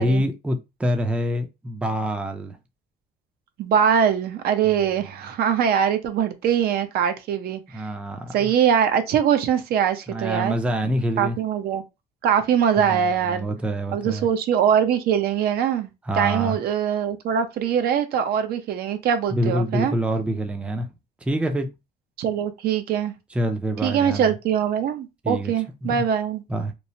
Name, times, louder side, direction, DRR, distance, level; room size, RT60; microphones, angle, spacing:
voice 1, 0.0-2.6 5.0-5.1 7.7-8.5 10.1-11.4 12.8-14.3 16.0-16.6 19.3-20.9 21.2-21.7 23.3-24.3 25.2-25.5 25.8-26.1 26.5-26.7, equal, 5° right, 0.4 m, -26 dB
voice 2, 3.6-7.9 8.3-10.5 11.2-11.8 12.2-13.5 13.9-15.9 16.1-19.9 22.2-23.1 23.8-26.4, right 8 dB, 65° right, 0.6 m, -22 dB
3.0 x 2.0 x 2.7 m
cardioid pair, 110°, 17 cm